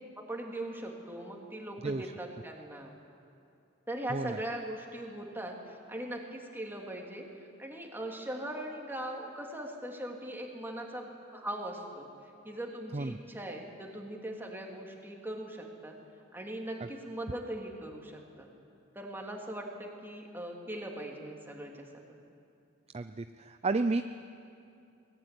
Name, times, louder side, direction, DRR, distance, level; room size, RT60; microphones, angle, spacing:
voice 1, 0.3-2.9 3.9-7.3 7.6-12.1 12.4-15.9 16.3-18.5 18.9-22.2, right 1 dB, 10° right, 0 dB, 3.0 m, -40 dB
voice 2, 22.9-24.1, right 3 dB, 30° right, 9 dB, 0.5 m, -31 dB
22.5 x 19.5 x 9.9 m, 2.6 s
head